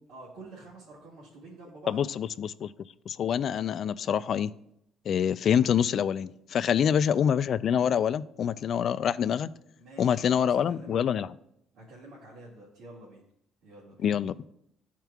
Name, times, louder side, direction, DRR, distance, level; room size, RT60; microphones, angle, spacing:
voice 1, 0.1-2.0 6.7-7.0 9.8-11.0 11.7-13.2 13.6-14.1, right 2 dB, 80° right, -7 dB, 2.0 m, -48 dB
voice 2, 1.9-2.7 3.1-4.5 5.1-9.5 10.0-11.3 14.0-14.3, left 8 dB, 55° left, 14 dB, 0.3 m, -26 dB
12.0 x 4.5 x 2.3 m, 0.74 s
cardioid pair, 100°, 0 cm